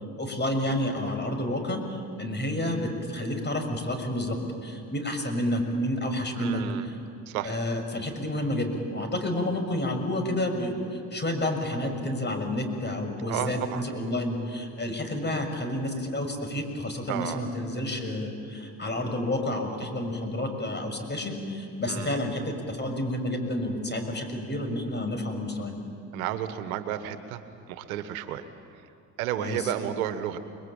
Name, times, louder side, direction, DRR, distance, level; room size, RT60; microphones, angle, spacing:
voice 1, 0.2-6.9 7.4-25.8 29.4-29.7, left 1 dB, 25° left, 6 dB, 6.3 m, -30 dB
voice 2, 6.3-6.8 7.3-7.6 13.3-13.8 17.1-17.4 21.9-22.1 26.1-27.4 27.7-28.5 29.2-30.4, right 11 dB, 75° right, 10 dB, 1.6 m, -32 dB
30.0 x 22.0 x 9.0 m, 2.5 s
hypercardioid pair, 65°, 42 cm